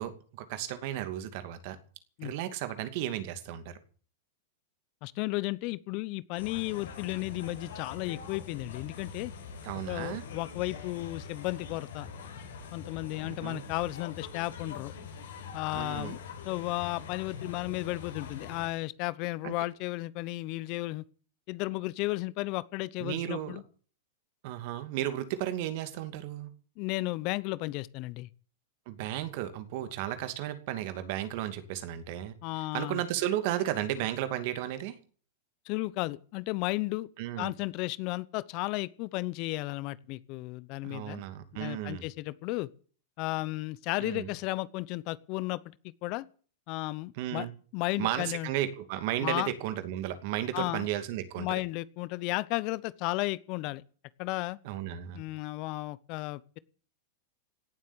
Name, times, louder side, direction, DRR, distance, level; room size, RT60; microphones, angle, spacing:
voice 1, 0.0-1.8 2.2-3.8 9.6-10.2 13.2-13.6 15.7-16.2 19.4-19.5 23.0-23.6 24.4-26.5 28.9-35.0 37.2-37.5 40.8-42.0 44.0-44.3 47.2-47.5 48.0-51.6 54.6-55.2, right 12 dB, 55° right, 10 dB, 2.5 m, -34 dB
voice 2, 5.0-9.3 9.9-12.1 12.7-14.9 15.5-16.2 16.4-21.0 21.5-23.6 26.8-28.3 32.4-33.0 35.7-37.1 37.4-41.2 41.5-42.7 43.2-45.6 46.0-46.2 46.7-47.5 47.7-48.5 49.2-49.5 50.5-50.9 51.4-53.8 54.2-54.6 55.1-56.6, left 21 dB, 50° left, 20 dB, 0.8 m, -34 dB
sound 1, 6.4-18.7, left 6 dB, 85° left, 6.8 m, -44 dB
17.5 x 7.7 x 9.8 m, 0.43 s
hypercardioid pair, 120°, 0 cm